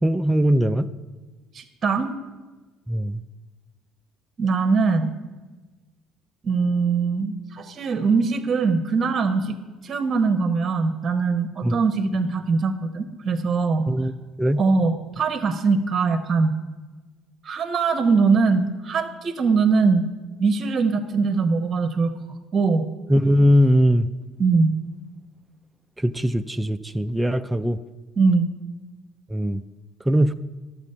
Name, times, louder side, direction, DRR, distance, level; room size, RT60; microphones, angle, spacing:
voice 1, 0.0-0.9 2.9-3.2 11.6-11.8 13.9-14.1 14.4-14.6 23.1-24.1 26.0-27.8 29.3-29.6 30.1-30.3, equal, 10° right, 9 dB, 0.4 m, -20 dB
voice 2, 1.5-2.1 4.4-5.1 6.4-9.5 9.8-13.8 14.6-16.5 17.4-20.1 20.4-22.9 24.4-24.7 28.2-28.5, right 4 dB, 40° right, 7 dB, 0.9 m, -22 dB
12.0 x 7.2 x 5.6 m, 1.3 s
supercardioid pair, 75°, 0 cm